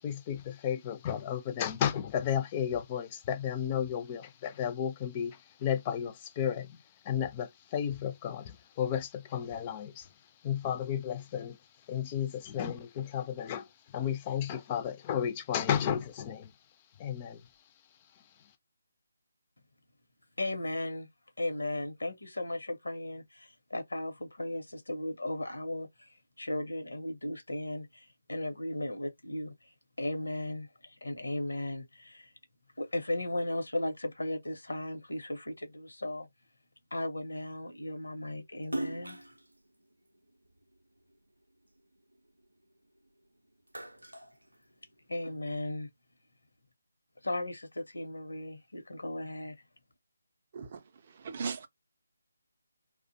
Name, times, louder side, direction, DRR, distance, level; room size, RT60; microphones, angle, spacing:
voice 1, 0.0-6.8 7.0-10.1 10.4-11.6 11.9-16.5 17.0-17.4, left 9 dB, 20° left, 0.4 m, -33 dB
voice 2, 20.4-21.1 21.4-32.3 32.8-36.3 36.9-39.2 45.1-45.9 47.2-49.6, left 1 dB, 75° left, 0.7 m, -36 dB
Splash splatter, 38.6-41.2 41.6-43.1 43.4-45.2, right 1 dB, 85° right, 0.5 m, -41 dB
voice 3, 51.1-51.7, right 5 dB, 35° right, 0.5 m, -38 dB
2.4 x 2.0 x 2.6 m
figure-of-eight pair, 150°, 0 cm